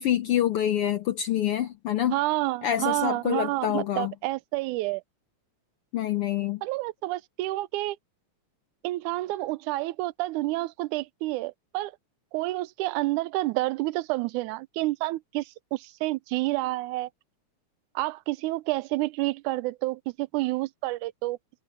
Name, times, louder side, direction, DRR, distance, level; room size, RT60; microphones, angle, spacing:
voice 1, 0.0-2.2 2.6-4.1 5.9-6.6, left 11 dB, 75° left, 1.3 m, -26 dB
voice 2, 2.1-5.0 6.6-8.0 8.8-11.9 12.3-17.1 18.0-21.4, right 19 dB, 90° right, 2.1 m, -29 dB
omnidirectional pair, 3.4 m